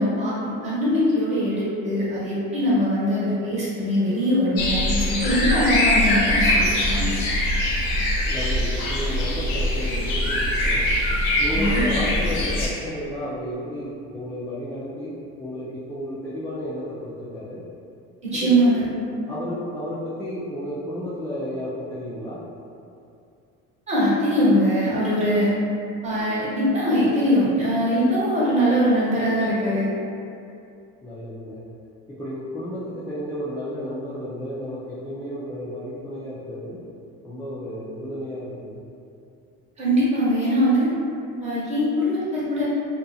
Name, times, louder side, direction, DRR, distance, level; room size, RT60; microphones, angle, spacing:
voice 1, 0.0-7.1 11.5-11.8 18.2-18.9 23.9-25.5 26.0-29.9 39.8-40.9 41.4-42.7, equal, 25° right, -10 dB, 1.2 m, -22 dB
sound 1, 4.6-12.7, left 1 dB, 85° left, 0.6 m, -22 dB
voice 2, 8.3-10.9 11.4-15.1 15.4-17.6 18.3-18.5 19.3-22.4 31.0-31.6 32.1-36.8 37.2-38.8, equal, 5° left, -13 dB, 0.5 m, -32 dB
2.7 x 2.5 x 2.4 m, 2.5 s
supercardioid pair, 105°, 29 cm